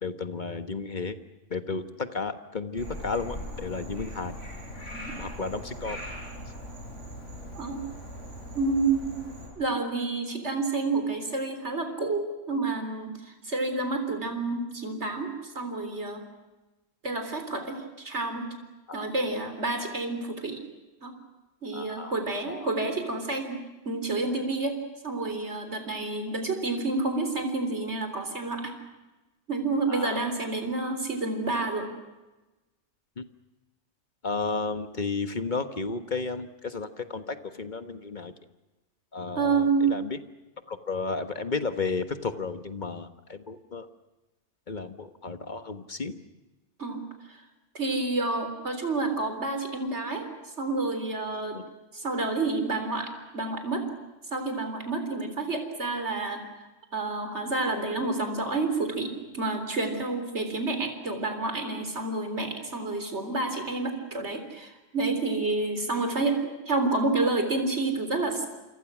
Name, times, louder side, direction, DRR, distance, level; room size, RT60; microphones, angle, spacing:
voice 1, 0.0-1.2 1.5-4.3 5.2-6.0 19.0-19.1 21.7-22.1 22.5-22.7 29.9-30.3 33.2-33.3 34.2-38.3 39.1-40.2 40.7-43.9 44.7-46.2 51.5-51.6, left 4 dB, 40° left, 9 dB, 1.5 m, -33 dB
Frog, 2.8-9.5, equal, 75° left, 7.2 m, -40 dB
voice 2, 8.5-9.2 9.6-16.2 17.0-18.5 18.9-20.6 21.0-21.1 21.6-24.8 25.0-28.7 29.5-31.9 39.4-40.0 46.8-47.1 47.7-50.3 50.6-51.6 51.9-53.9 54.3-56.7 56.9-68.5, right 3 dB, 60° right, 7 dB, 4.0 m, -29 dB
28.5 x 25.5 x 6.2 m, 1.1 s
omnidirectional pair, 1.3 m